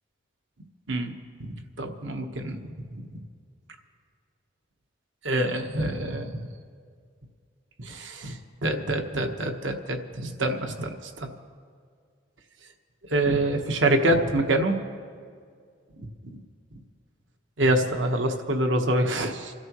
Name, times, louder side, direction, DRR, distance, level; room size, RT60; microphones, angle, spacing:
voice 1, 1.4-2.7 5.2-6.5 7.8-11.3 13.1-14.8 16.2-16.3 17.6-19.5, right 1 dB, 75° right, 5 dB, 1.2 m, -26 dB
28.5 x 13.0 x 3.1 m, 2.1 s
head